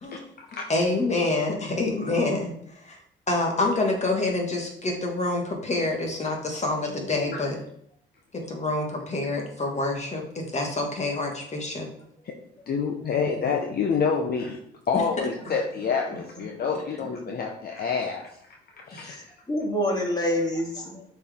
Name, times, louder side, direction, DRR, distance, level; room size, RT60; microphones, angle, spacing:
voice 1, 0.1-0.7 7.3-7.4 12.7-14.6 14.9-18.6 18.9-19.1, left 5 dB, 50° left, 0.9 m, -28 dB
voice 2, 0.7-2.5 2.9-3.0 3.3-7.6 8.5-11.9, left 2 dB, 35° left, 1.8 m, -27 dB
voice 3, 6.8-7.5 15.4-15.6 19.0-21.1, equal, 20° left, 2.1 m, -29 dB
6.7 x 4.6 x 3.7 m
cardioid pair, 90°, 20 cm